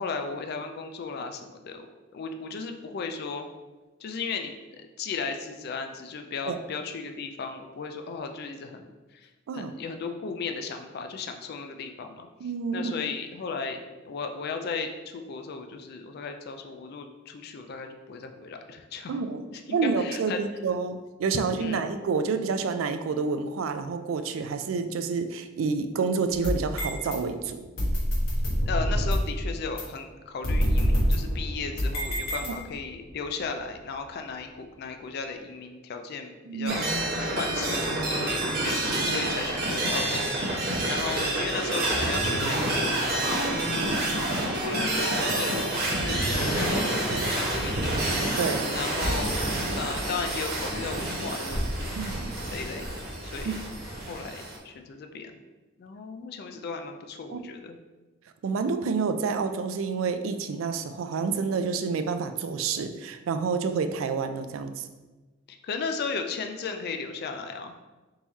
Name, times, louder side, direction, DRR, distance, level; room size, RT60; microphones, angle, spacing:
voice 1, 0.0-1.9 2.1-3.5 4.0-12.3 12.7-19.2 19.5-20.4 21.6-21.8 28.7-36.9 37.4-38.0 38.3-43.6 44.1-48.4 48.7-49.4 49.8-52.0 52.5-53.6 54.1-55.3 55.8-57.8 65.5-67.7, left 4 dB, 55° left, 5 dB, 0.3 m, -36 dB
voice 2, 12.4-12.9 19.1-19.4 19.7-27.6 32.4-32.5 36.5-36.7 39.0-39.2 48.2-48.8 52.0-52.4 53.5-53.6 57.3-57.4 58.4-64.9, right 5 dB, 85° right, 8 dB, 0.4 m, -29 dB
sound 1, 26.3-27.2 27.8-29.4 29.8-29.9 30.4-32.9, equal, 85° left, 1.2 m, -26 dB
sound 2, 36.7-54.6, right 1 dB, 50° right, 0.9 m, -28 dB
3.8 x 3.0 x 4.0 m, 1.2 s
head